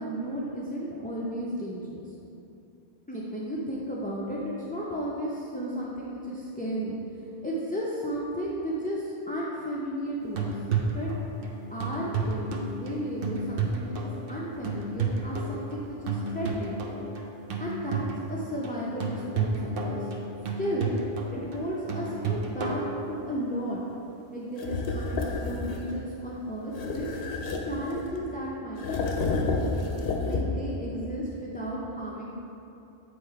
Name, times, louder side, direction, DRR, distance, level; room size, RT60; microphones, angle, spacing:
voice 1, 0.0-2.1 3.1-10.5 10.9-11.1 11.7-16.8 17.6-20.1 20.6-21.0 21.3-22.8 23.1-23.8 24.3-27.1 27.6-29.1 30.2-32.3, equal, 10° left, -6 dB, 0.4 m, -34 dB
sound 1, 10.2-23.6 27.1-27.2, right 4 dB, 65° right, 0.8 m, -32 dB
sound 2, 24.6-25.9 26.7-28.3 28.8-30.7, left 3 dB, 65° left, 0.9 m, -30 dB
8.3 x 3.4 x 4.6 m, 2.8 s
omnidirectional pair, 1.1 m